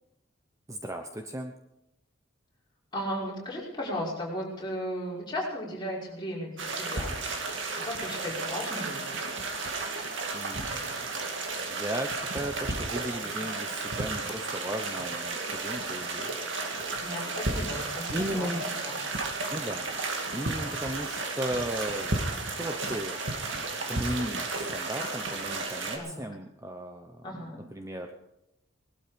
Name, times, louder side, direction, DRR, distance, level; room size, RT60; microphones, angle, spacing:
voice 1, 0.7-1.5 10.3-10.9 11.7-16.3 18.1-18.8 19.5-19.9 20.3-22.1 22.4-23.2 23.5-27.4 27.7-28.1, right 1 dB, 15° right, 5 dB, 0.9 m, -36 dB
voice 2, 2.9-7.1 7.8-9.0 17.0-19.0 26.0-26.3 27.2-27.5, equal, 20° left, -5 dB, 5.5 m, -35 dB
sound 1, 6.6-26.0, right 3 dB, 65° right, 2.4 m, -33 dB
19.5 x 12.5 x 5.3 m, 0.87 s
head